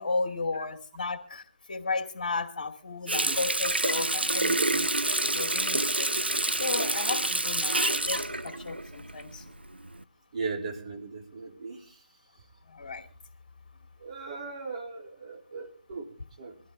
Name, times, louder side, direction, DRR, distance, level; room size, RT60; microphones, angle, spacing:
voice 1, 0.0-4.9 5.3-9.6 12.7-13.1, left 3 dB, 50° left, 2.4 m, -34 dB
Water tap faucet, 3.1-9.4 9.8-10.0, right 2 dB, 85° right, 0.9 m, -27 dB
voice 2, 10.3-12.0 14.0-16.1 16.4-16.6, right 4 dB, 40° right, 3.6 m, -38 dB
22.5 x 14.0 x 3.7 m
figure-of-eight pair, 150°, 5 cm